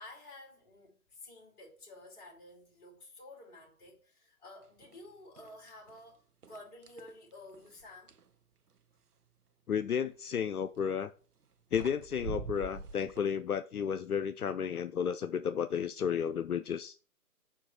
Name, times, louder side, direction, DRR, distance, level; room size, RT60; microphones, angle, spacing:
voice 1, 0.0-8.2, left 2 dB, 25° left, 2.6 m, -52 dB
sound 1, 4.8-5.0 5.4-6.0 6.4-8.3 10.5-10.8 11.4-11.5 11.7-13.2, right 5 dB, 90° right, 0.7 m, -45 dB
voice 2, 9.7-11.1 11.7-17.0, left 7 dB, 75° left, 0.6 m, -32 dB
5.6 x 4.5 x 4.2 m
figure-of-eight pair, 140°, 45 cm